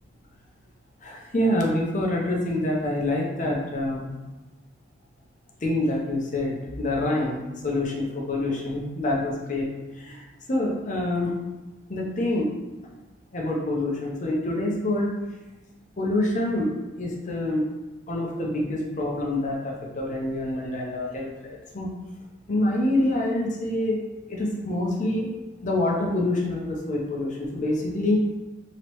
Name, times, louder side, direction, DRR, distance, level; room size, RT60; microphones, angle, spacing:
voice 1, 1.0-4.1 5.6-9.7 10.0-11.4 11.9-12.5 13.3-15.1 16.0-16.7 17.0-17.7 18.1-22.0 22.5-24.0 24.3-25.3 25.6-28.2, left 1 dB, 40° left, -2 dB, 0.6 m, -26 dB
3.1 x 2.8 x 3.0 m, 1.1 s
head